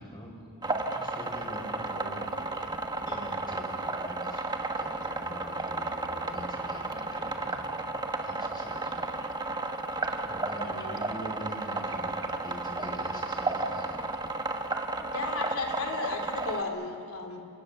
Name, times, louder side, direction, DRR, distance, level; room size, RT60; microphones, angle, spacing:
voice 1, 0.0-7.8 8.2-9.2 9.6-9.8 10.1-13.9, equal, 20° left, 0 dB, 6.1 m, -45 dB
sound 1, 0.6-16.6, right 2 dB, 20° right, 1.4 m, -33 dB
voice 2, 10.6-11.0 15.1-17.4, left 3 dB, 90° left, 4 dB, 3.5 m, -34 dB
29.5 x 25.5 x 6.9 m, 2.6 s
head